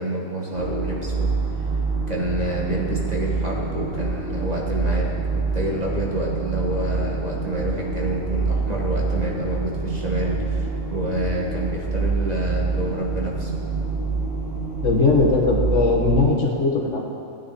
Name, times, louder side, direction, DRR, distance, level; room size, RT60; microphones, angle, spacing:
voice 1, 0.0-1.4 2.1-13.5, right 1 dB, 30° right, -3 dB, 1.7 m, -28 dB
sound 1, 0.5-16.2, right 4 dB, 70° right, 4.3 m, -26 dB
voice 2, 14.8-17.0, left 3 dB, 60° left, -1 dB, 1.8 m, -19 dB
17.0 x 9.5 x 4.3 m, 2.4 s
omnidirectional pair, 1.4 m